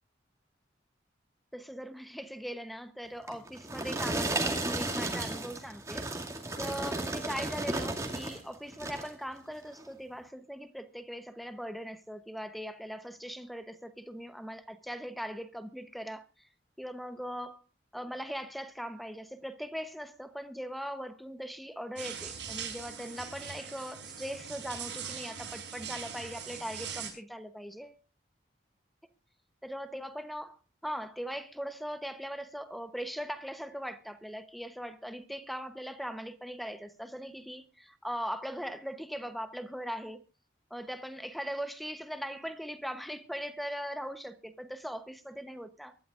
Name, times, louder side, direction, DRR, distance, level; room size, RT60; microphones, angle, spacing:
voice 1, 1.5-6.1 6.6-16.5 16.8-17.6 17.9-28.0 29.6-40.2 40.7-45.9, equal, ahead, 0.9 m, -40 dB
sound 1, 3.3-8.4 8.7-9.2 9.7-9.9, right 2 dB, 15° right, 2.3 m, -34 dB
sound 2, 22.0-27.1, right 7 dB, 80° right, 5.2 m, -41 dB
23.5 x 12.5 x 2.5 m
head